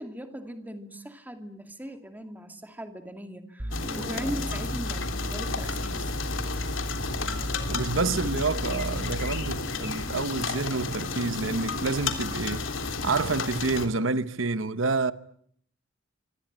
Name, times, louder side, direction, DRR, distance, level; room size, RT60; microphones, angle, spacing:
voice 1, 0.0-6.1, equal, 10° right, 2.5 m, -39 dB
sound 1, 3.6-9.8, equal, 25° right, 1.1 m, -35 dB
sound 2, 3.7-13.9, left 4 dB, 80° left, 3.4 m, -32 dB
voice 2, 7.7-12.6 13.0-15.1, right 3 dB, 85° right, 1.1 m, -28 dB
26.0 x 25.5 x 8.9 m
head